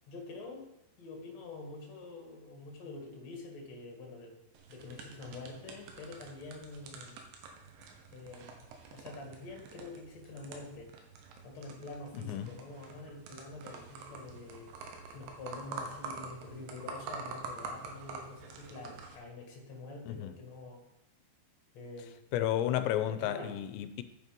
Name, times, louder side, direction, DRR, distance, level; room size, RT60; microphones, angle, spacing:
voice 1, 0.1-0.7 1.0-4.4 4.7-7.2 8.1-10.9 11.4-14.7 15.1-20.8 21.7-22.2 23.1-23.5, left 3 dB, 45° left, 2.6 m, -46 dB
sound 1, 4.5-19.2, right 4 dB, 80° right, 3.5 m, -47 dB
voice 2, 12.1-12.5 20.1-20.3 22.3-24.0, left 11 dB, 85° left, 2.9 m, -32 dB
9.3 x 8.5 x 5.3 m
omnidirectional pair, 5.2 m